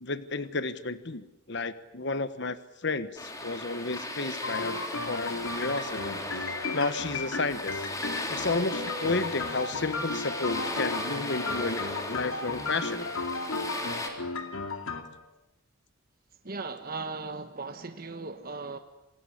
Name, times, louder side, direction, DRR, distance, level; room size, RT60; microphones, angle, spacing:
voice 1, 0.0-2.6 2.8-4.8 5.1-6.2 6.7-7.8 8.3-13.1, left 3 dB, 55° left, 12 dB, 1.2 m, -32 dB
sound 1, 3.2-14.1, left 1 dB, 15° left, 3.8 m, -37 dB
sound 2, 4.4-15.0, left 3 dB, 85° left, 2.7 m, -35 dB
sound 3, 5.9-15.3, equal, 80° right, 6.4 m, -45 dB
voice 2, 16.4-18.8, right 3 dB, 45° right, 6 dB, 1.3 m, -37 dB
27.0 x 21.0 x 9.9 m, 0.96 s
head